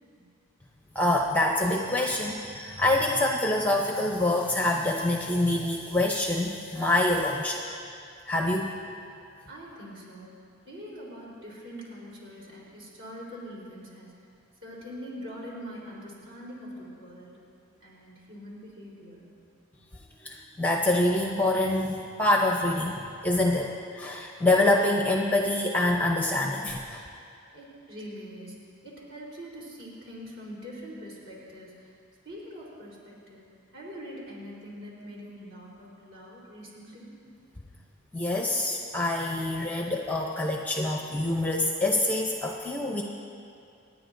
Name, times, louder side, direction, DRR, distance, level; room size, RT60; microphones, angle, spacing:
voice 1, 0.9-7.6 8.3-8.7 20.2-23.0 23.2-27.0 38.1-43.0, left 2 dB, 5° left, 1 dB, 0.6 m, -26 dB
voice 2, 9.5-10.3 10.6-14.1 14.6-17.4 17.8-19.3 19.7-19.8 27.5-28.6 28.8-31.9 32.2-33.4 33.7-37.1 37.7-37.8, equal, 55° right, -5 dB, 3.7 m, -43 dB
28.0 x 9.7 x 2.6 m, 2.4 s
head